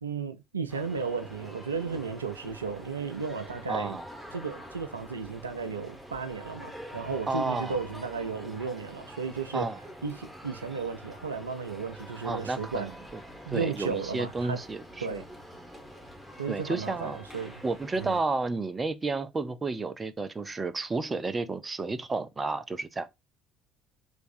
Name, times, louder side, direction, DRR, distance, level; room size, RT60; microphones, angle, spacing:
voice 1, 0.0-4.0 4.3-9.7 10.0-12.9 13.5-14.6 15.0-15.2 16.4-17.6 18.0-18.2, right 5 dB, 90° right, 0.4 m, -34 dB
sound 1, 0.7-18.2, equal, 5° right, 1.4 m, -46 dB
voice 2, 3.7-4.1 7.3-7.8 9.5-9.8 12.2-12.9 13.5-15.2 16.5-17.2 17.6-23.1, right 3 dB, 25° right, 0.5 m, -31 dB
3.4 x 2.6 x 4.1 m
figure-of-eight pair, 55°, 0 cm